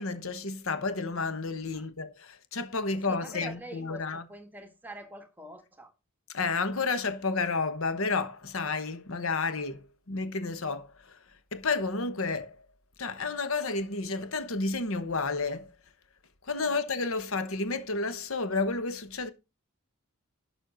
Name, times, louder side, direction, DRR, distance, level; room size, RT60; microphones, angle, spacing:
voice 1, 0.0-4.2 6.3-11.2 11.5-12.6 13.0-15.7 16.5-19.3, left 3 dB, 65° left, 1.1 m, -31 dB
voice 2, 3.1-5.9 16.6-16.8, right 1 dB, 10° right, 1.5 m, -45 dB
11.5 x 6.3 x 3.9 m
head